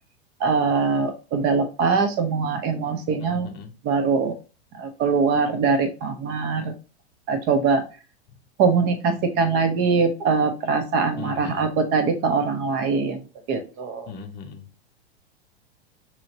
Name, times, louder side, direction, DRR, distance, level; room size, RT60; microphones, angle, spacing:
voice 1, 0.4-3.5 3.8-4.3 4.7-6.7 7.3-7.8 8.6-13.2 13.5-14.1, right 5 dB, 30° right, 7 dB, 0.7 m, -22 dB
voice 2, 3.2-3.7 11.2-11.7 14.1-14.7, left 6 dB, 30° left, 5 dB, 0.7 m, -38 dB
4.8 x 3.1 x 2.7 m, 0.33 s
figure-of-eight pair, 95°, 33 cm